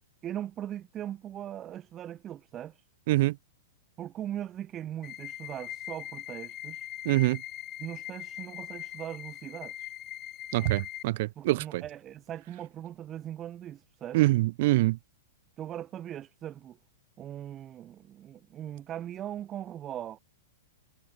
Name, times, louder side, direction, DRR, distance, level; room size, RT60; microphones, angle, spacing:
voice 1, 0.2-2.9 4.0-6.9 7.8-9.9 11.4-14.2 15.6-16.8 17.2-20.2, right 11 dB, 20° right, 2.6 m, -40 dB
sound 1, 5.0-11.0, left 13 dB, 25° left, 7.4 m, -41 dB
voice 2, 7.0-7.4 10.5-11.8 14.1-15.0, right 19 dB, 50° right, 0.5 m, -25 dB
hypercardioid pair, 155°, 0 cm